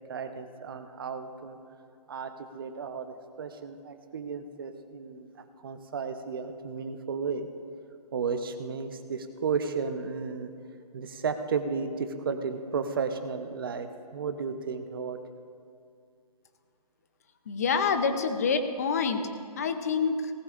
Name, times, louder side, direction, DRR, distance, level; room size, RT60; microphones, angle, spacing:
voice 1, 0.1-1.6 2.1-5.3 5.6-7.5 8.1-10.5 10.9-15.2, right 5 dB, 35° right, 8 dB, 0.8 m, -33 dB
voice 2, 17.5-19.2 19.6-20.3, left 5 dB, 25° left, 8 dB, 0.6 m, -27 dB
18.5 x 18.0 x 2.5 m, 2.3 s
hypercardioid pair, 170°, 21 cm